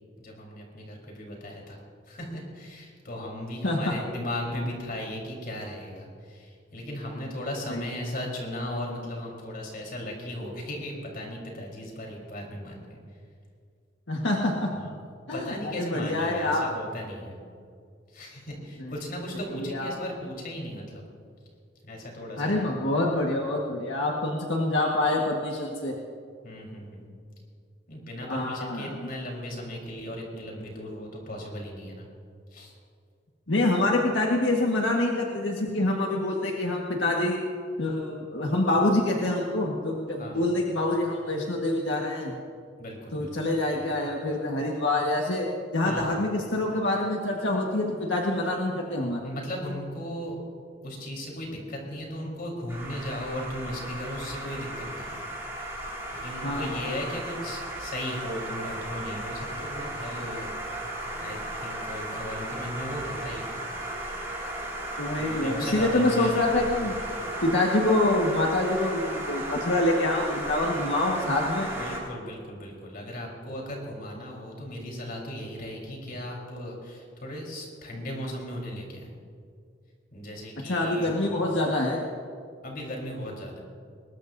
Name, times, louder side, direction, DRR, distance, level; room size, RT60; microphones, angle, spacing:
voice 1, 0.2-1.8 2.1-13.0 14.8-14.9 15.3-17.3 18.1-21.0 21.8-22.7 26.4-27.1 27.9-32.1 32.5-32.7 40.2-40.5 42.8-43.5 45.9-46.2 49.2-50.4 50.8-55.2 55.6-55.7 56.1-63.6 65.2-66.7 71.6-79.1 80.1-81.2 82.6-83.6, left 1 dB, 55° left, -1 dB, 4.1 m, -36 dB
voice 2, 3.6-3.9 7.7-7.8 14.1-14.7 15.3-16.6 18.8-18.9 19.6-19.9 22.4-25.9 28.3-29.1 33.5-37.4 37.8-42.3 43.1-45.5 45.7-49.2 56.4-56.9 65.0-67.0 67.4-71.7 80.6-82.0, left 2 dB, 90° left, -1 dB, 1.6 m, -26 dB
sound 1, 52.7-72.0, right 1 dB, 15° right, 4.4 m, -35 dB
21.5 x 20.5 x 2.7 m, 2.2 s
head